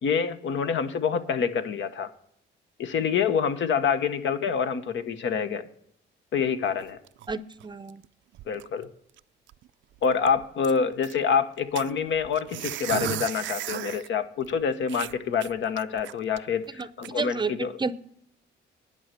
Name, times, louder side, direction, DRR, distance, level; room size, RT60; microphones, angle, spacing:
voice 1, 0.0-2.1 2.8-5.7 6.3-7.0 8.5-8.9 10.0-17.8, left 6 dB, 70° left, 10 dB, 1.1 m, -26 dB
sound 1, 6.7-8.1 8.3-8.8 9.2-9.3 9.5-9.7 10.0-11.2 11.8-14.1 14.5-14.6 14.9-16.4 16.8-17.1, right 15 dB, 70° right, 0.4 m, -35 dB
voice 2, 7.3-8.0 17.1-17.5 17.8-17.9, right 4 dB, 25° right, 15 dB, 0.6 m, -30 dB
11.0 x 5.6 x 7.6 m, 0.71 s
cardioid pair, 90°, 20 cm